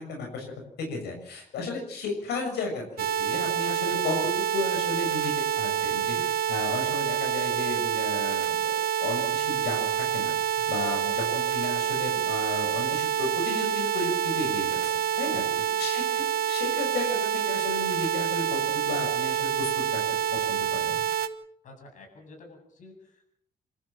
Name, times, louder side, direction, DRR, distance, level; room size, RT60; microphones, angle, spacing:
voice 1, 0.0-10.3 10.7-15.4 15.8-20.0 20.5-21.0, left 3 dB, 85° left, 2 dB, 6.8 m, -34 dB
sound 1, 3.0-21.3, right 10 dB, 70° right, 1.5 m, -27 dB
voice 2, 15.1-15.8 16.2-16.3 21.6-23.2, left 3 dB, 50° left, 3 dB, 7.8 m, -47 dB
27.5 x 14.0 x 7.5 m, 0.69 s
cardioid pair, 150°, 17 cm